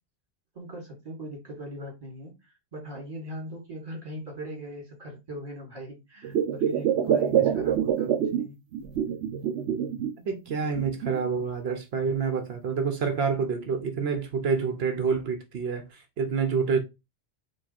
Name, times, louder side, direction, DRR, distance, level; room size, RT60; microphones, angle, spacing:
voice 1, 0.5-8.6, equal, 35° right, 2.3 m, -40 dB
sound 1, 6.2-8.4 8.7-10.1 10.5-11.4 12.1-12.2, right 9 dB, 90° right, 1.0 m, -26 dB
voice 2, 10.3-16.8, right 5 dB, 70° right, 0.9 m, -27 dB
4.8 x 2.3 x 4.2 m
omnidirectional pair, 1.1 m